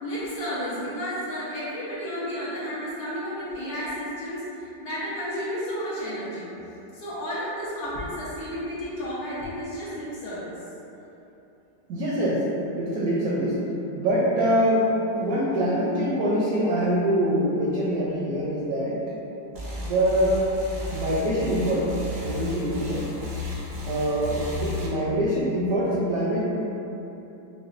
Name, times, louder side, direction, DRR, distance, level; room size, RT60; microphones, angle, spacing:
voice 1, 0.0-6.5 6.9-10.5, equal, 70° left, -9 dB, 0.9 m, -32 dB
voice 2, 11.9-12.5 12.8-13.7 13.9-19.0 19.8-20.4 20.9-21.9 22.2-23.1 23.9-26.5, equal, 75° right, -6 dB, 0.9 m, -24 dB
sound 1, 19.5-24.9, left 1 dB, 90° right, 0.5 m, -34 dB
4.7 x 2.0 x 2.5 m, 3.0 s
omnidirectional pair, 2.0 m